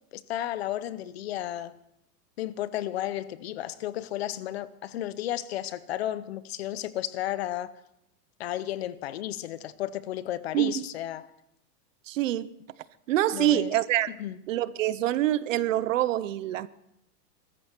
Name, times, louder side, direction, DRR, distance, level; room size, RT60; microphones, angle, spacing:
voice 1, 0.1-1.7 2.4-7.7 8.4-11.3 13.3-13.7 14.2-14.4, left 13 dB, 40° left, 0.6 m, -33 dB
voice 2, 10.5-10.8 12.1-12.5 13.1-14.1 14.5-16.7, right 14 dB, 55° right, 0.7 m, -25 dB
22.5 x 14.0 x 4.5 m
supercardioid pair, 165°, 47 cm